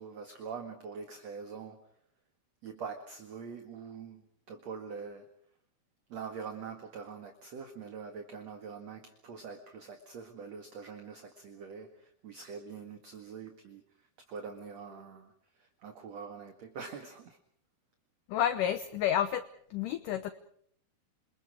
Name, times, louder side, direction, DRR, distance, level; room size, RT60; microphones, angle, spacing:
voice 1, 0.0-1.8 2.6-4.2 4.5-5.3 6.1-17.4, right 5 dB, 50° right, 2.6 m, -44 dB
voice 2, 18.3-19.4 19.7-20.3, left 10 dB, 70° left, 2.2 m, -30 dB
28.5 x 27.5 x 5.0 m
omnidirectional pair, 4.7 m